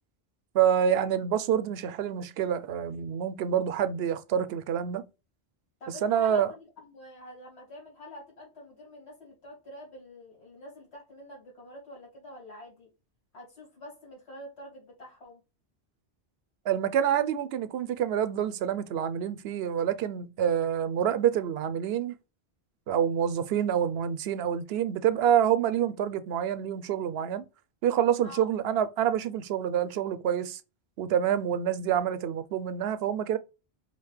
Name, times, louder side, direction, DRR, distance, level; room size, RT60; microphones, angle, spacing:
voice 1, 0.5-5.0 6.0-6.5 16.7-22.2 22.9-27.4 27.8-30.6 31.0-33.4, right 9 dB, 75° right, 0.8 m, -27 dB
voice 2, 5.8-12.9 13.3-15.4 28.2-28.5, left 1 dB, 80° left, 2.5 m, -47 dB
5.0 x 2.8 x 3.1 m
omnidirectional pair, 1.1 m